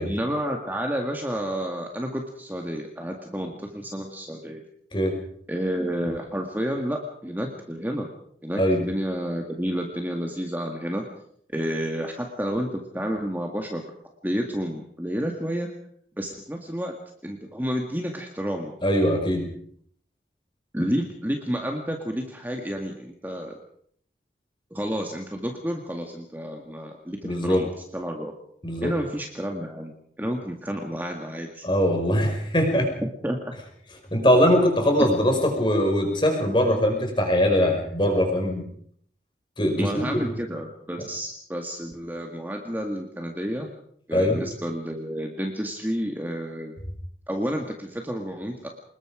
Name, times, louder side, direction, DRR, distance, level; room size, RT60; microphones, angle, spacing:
voice 1, 0.0-4.6 5.5-8.1 8.4-11.0 11.5-13.9 14.2-15.7 16.2-16.9 17.2-18.7 20.7-23.6 24.7-28.3 28.8-31.7 33.0-33.4 39.8-43.7 44.1-46.7 47.3-48.7, equal, 10° right, 2 dB, 2.0 m, -30 dB
voice 2, 18.8-19.5 27.2-27.6 28.6-28.9 31.6-32.9 34.1-38.6 39.6-40.2 44.1-44.4, equal, 25° left, 3 dB, 5.5 m, -21 dB
26.0 x 21.5 x 5.1 m, 0.64 s
head